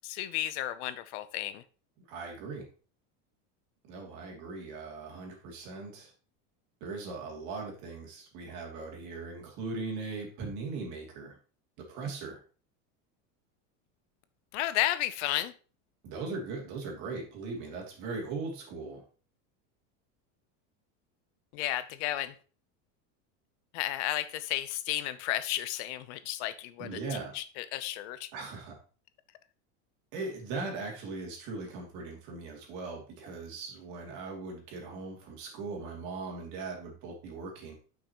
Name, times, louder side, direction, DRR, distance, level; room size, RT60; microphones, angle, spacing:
voice 1, 0.0-1.6 14.5-15.5 21.5-22.3 23.7-28.3, left 14 dB, 65° left, 13 dB, 0.7 m, -33 dB
voice 2, 2.1-2.7 3.9-6.1 6.8-11.4 11.8-12.4 16.0-19.0 26.8-27.4 28.3-28.8 30.1-37.7, right 3 dB, 50° right, 1 dB, 2.7 m, -39 dB
8.6 x 5.8 x 3.0 m, 0.37 s
cardioid pair, 165°, 37 cm